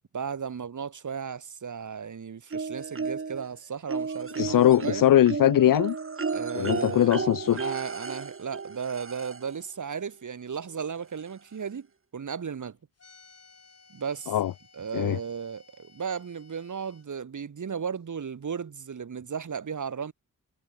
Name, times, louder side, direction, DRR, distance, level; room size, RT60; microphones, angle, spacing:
voice 1, 0.1-5.1 6.3-7.1 7.5-11.9 12.1-12.8 13.9-14.3 14.7-20.1, right 6 dB, 60° right, 2.4 m, -35 dB
sound 1, 2.5-3.5 3.9-9.6 10.8-10.9 11.3-11.4, right 4 dB, 40° right, 2.0 m, -33 dB
voice 2, 4.4-6.0 6.5-7.8 14.3-14.5 14.9-15.2, left 12 dB, 75° left, 0.6 m, -21 dB
sound 2, 13.0-17.0, left 4 dB, 45° left, 4.9 m, -57 dB
cardioid pair, 70°, 33 cm